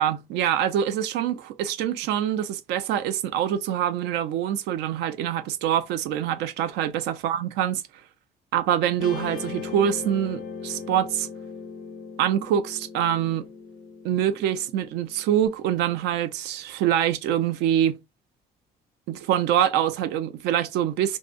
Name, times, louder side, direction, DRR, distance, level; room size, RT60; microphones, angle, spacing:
voice 1, 0.0-7.8 8.5-11.3 12.2-13.5 14.0-18.0 19.1-21.2, right 10 dB, 85° right, 0.4 m, -25 dB
Guitar, 9.0-15.5, left 5 dB, 55° left, 0.4 m, -38 dB
2.5 x 2.0 x 2.4 m
cardioid pair, 110°, 17 cm